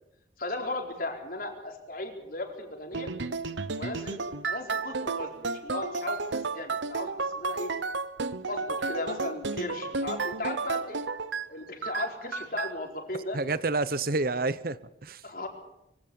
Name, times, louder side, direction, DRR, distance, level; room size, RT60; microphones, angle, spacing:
voice 1, 0.4-3.1 3.7-4.2 4.5-7.7 8.5-11.0 11.5-13.4 15.2-15.5, left 2 dB, 50° left, 4.3 m, -36 dB
sound 1, 2.9-11.5 11.8-12.7, right 4 dB, 85° right, 1.0 m, -32 dB
voice 2, 13.3-15.2, right 3 dB, 50° right, 0.9 m, -29 dB
24.0 x 16.5 x 7.1 m
head